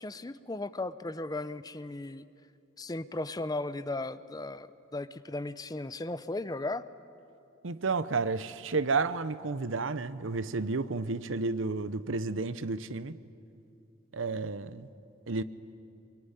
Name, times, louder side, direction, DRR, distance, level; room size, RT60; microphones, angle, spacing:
voice 1, 0.0-2.3 2.8-6.8, left 2 dB, 20° left, 0.6 m, -36 dB
voice 2, 7.6-13.2 14.1-14.9 15.3-15.4, right 3 dB, 85° right, 0.8 m, -31 dB
23.5 x 23.5 x 9.9 m
head